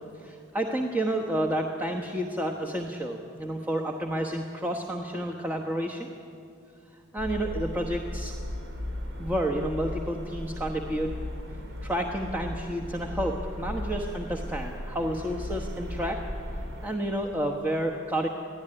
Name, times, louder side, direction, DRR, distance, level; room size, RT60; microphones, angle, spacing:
voice 1, 0.2-6.1 7.1-8.4 9.2-11.2 11.8-16.2 16.8-18.3, right 1 dB, 10° right, -1 dB, 1.2 m, -30 dB
sound 1, 7.2-17.0, left 1 dB, 75° right, 3.2 m, -36 dB
24.0 x 15.5 x 9.9 m, 2.5 s
head